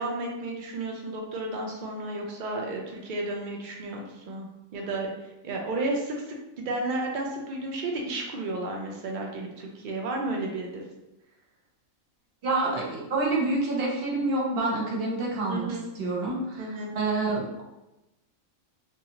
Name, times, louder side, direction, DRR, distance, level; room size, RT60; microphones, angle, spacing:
voice 1, 0.0-10.8 15.5-15.8 16.6-16.9, right 2 dB, 90° right, 0 dB, 0.4 m, -32 dB
voice 2, 12.4-15.7 15.9-16.7 16.9-17.6, right 2 dB, 50° right, -3 dB, 0.9 m, -27 dB
2.6 x 2.3 x 2.8 m, 0.96 s
omnidirectional pair, 1.4 m